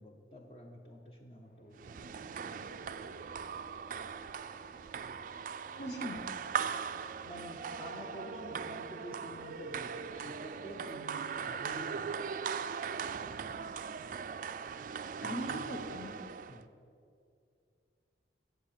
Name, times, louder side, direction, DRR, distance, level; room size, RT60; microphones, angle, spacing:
voice 1, 0.0-2.0 7.2-12.2 15.2-15.7 16.5-16.7, equal, 30° left, 2 dB, 0.7 m, -49 dB
Bowed string instrument, 1.3-9.9, right 2 dB, 50° left, 1.2 m, -59 dB
sound 1, 1.8-16.6, right 6 dB, 45° right, 0.3 m, -40 dB
voice 2, 5.8-6.3 15.2-16.1, equal, 70° left, 4 dB, 1.3 m, -40 dB
7.9 x 7.4 x 8.6 m, 2.4 s
head